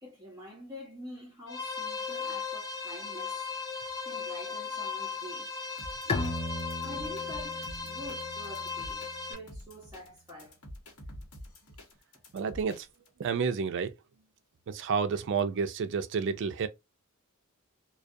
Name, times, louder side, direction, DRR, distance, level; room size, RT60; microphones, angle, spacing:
voice 1, 0.0-3.5 4.0-5.5 6.1-6.4 6.8-9.0 9.3-10.6, equal, 15° right, 0.6 m, -46 dB
sound 1, 1.5-9.3, left 5 dB, 45° left, 1.0 m, -37 dB
sound 2, 5.8-13.1, equal, 75° left, 1.1 m, -48 dB
Bowed string instrument, 6.1-9.6, left 2 dB, 25° left, 0.4 m, -37 dB
voice 2, 12.3-12.9 13.2-13.9 14.7-16.7, right 5 dB, 55° right, 0.4 m, -30 dB
2.3 x 2.2 x 2.6 m
head